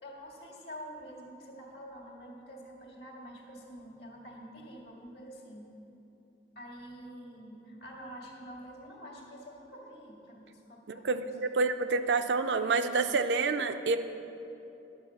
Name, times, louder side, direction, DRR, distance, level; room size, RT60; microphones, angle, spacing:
voice 1, 0.0-5.7 6.6-11.5, equal, 70° left, -1 dB, 1.9 m, -47 dB
voice 2, 10.9-14.0, right 4 dB, 80° right, 8 dB, 0.5 m, -28 dB
10.5 x 6.4 x 6.9 m, 3.0 s
head